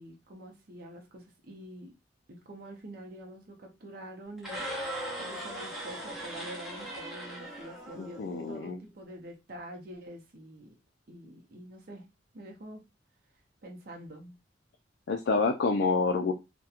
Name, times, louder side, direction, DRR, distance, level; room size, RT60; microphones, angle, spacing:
voice 1, 0.0-1.9 2.3-4.6 5.2-8.2 8.5-10.7 11.1-12.1 12.3-12.8 13.6-14.3, right 1 dB, 55° right, 0.6 m, -46 dB
sound 1, 4.4-8.5, right 1 dB, ahead, 0.9 m, -39 dB
voice 2, 8.0-8.8 15.1-16.3, left 4 dB, 65° left, 0.3 m, -28 dB
2.8 x 2.1 x 2.3 m
head